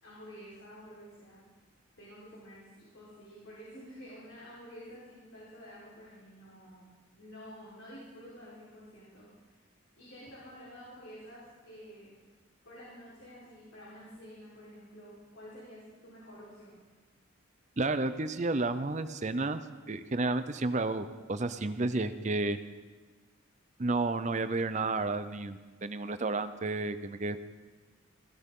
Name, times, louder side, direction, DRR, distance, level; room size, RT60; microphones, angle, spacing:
voice 1, 0.0-1.4 2.0-9.3 10.0-12.1 12.6-16.8, equal, 75° left, -8 dB, 4.4 m, -50 dB
voice 2, 17.8-19.6 19.9-22.6 23.8-27.4, right 2 dB, 35° right, 11 dB, 0.6 m, -31 dB
16.0 x 16.0 x 3.8 m, 1.3 s
head